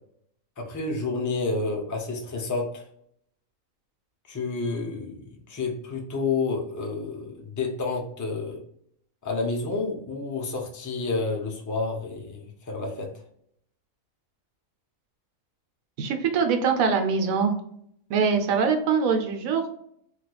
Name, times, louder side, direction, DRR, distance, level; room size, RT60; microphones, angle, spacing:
voice 1, 0.6-2.8 4.3-8.6 9.2-13.2, left 3 dB, 30° left, 1 dB, 0.3 m, -30 dB
voice 2, 16.0-17.5 18.1-19.7, right 5 dB, 90° right, 6 dB, 1.1 m, -23 dB
3.3 x 3.0 x 2.2 m, 0.68 s
omnidirectional pair, 1.4 m